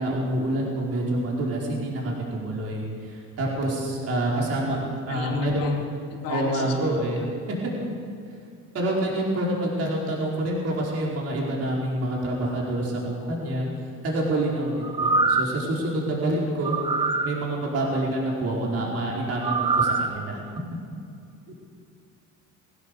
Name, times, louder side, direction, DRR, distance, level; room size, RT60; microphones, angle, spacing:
voice 1, 0.0-5.7 6.3-7.2 8.7-13.7 14.0-16.8 17.2-20.4, right 1 dB, 45° right, -3 dB, 4.9 m, -27 dB
voice 2, 4.3-4.8 5.1-5.8 6.1-6.7 7.2-7.3, left 4 dB, 90° left, 0 dB, 3.3 m, -31 dB
sound 1, 14.8-15.6 16.6-17.3 19.4-20.1 20.6-20.7, right 3 dB, 15° right, 0.7 m, -23 dB
23.0 x 17.0 x 6.8 m, 2.4 s
cardioid pair, 160°, 33 cm